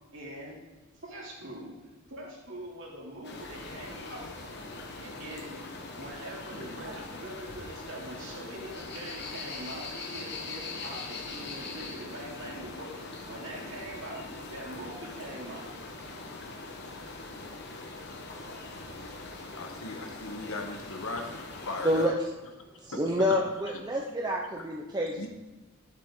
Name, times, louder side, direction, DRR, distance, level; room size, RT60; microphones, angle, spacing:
voice 1, 0.1-0.6 1.0-1.8 2.1-4.3 5.0-5.6 5.9-15.7, right 1 dB, 60° right, -4 dB, 2.9 m, -43 dB
sound 1, 3.2-22.1, left 3 dB, 50° left, 1.2 m, -42 dB
voice 2, 19.6-22.1 22.9-23.0 25.2-25.3, left 2 dB, 75° left, 3 dB, 1.4 m, -37 dB
voice 3, 21.8-22.3 22.8-25.3, equal, 20° right, -1 dB, 0.7 m, -28 dB
12.0 x 7.5 x 3.8 m, 1.2 s
head